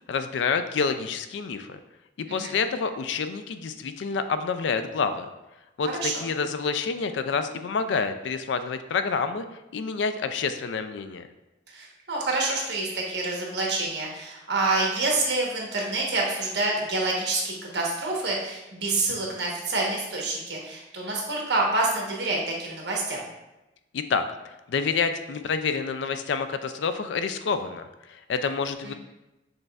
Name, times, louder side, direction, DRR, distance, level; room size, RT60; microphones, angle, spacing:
voice 1, 0.1-1.8 2.2-5.3 5.8-9.4 9.7-11.3 23.9-24.2 24.7-27.8 28.1-28.9, left 5 dB, 75° left, 9 dB, 0.4 m, -28 dB
voice 2, 11.7-23.2 28.8-28.9, right 2 dB, 65° right, -2 dB, 1.1 m, -27 dB
6.5 x 3.2 x 2.3 m, 0.98 s
head